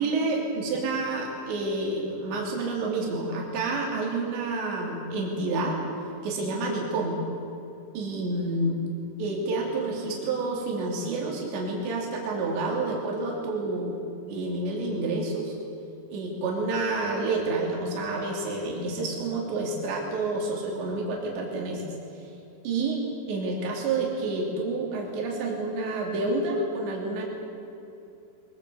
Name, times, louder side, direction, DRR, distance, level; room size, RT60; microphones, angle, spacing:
voice 1, 0.0-5.8 6.2-7.2 8.0-8.8 9.2-14.0 14.3-15.6 16.1-21.8 22.6-23.0 23.3-27.2, right 3 dB, 80° right, -2 dB, 5.5 m, -29 dB
23.5 x 22.5 x 8.0 m, 2.8 s
omnidirectional pair, 5.0 m